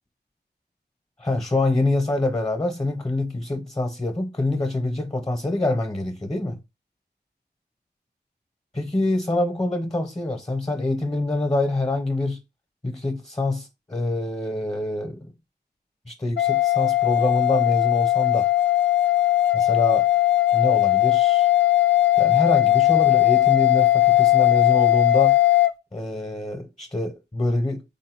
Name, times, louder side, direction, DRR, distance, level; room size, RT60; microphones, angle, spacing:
voice 1, 1.2-6.6 8.7-12.4 12.8-15.3 16.1-18.5 19.5-20.1 20.5-21.5 22.2-25.4 25.9-27.8, left 2 dB, 25° left, 0.8 m, -25 dB
sound 1, 16.4-25.7, left 15 dB, 90° left, 0.4 m, -18 dB
3.8 x 2.7 x 3.0 m
wide cardioid pair, 50°, 18 cm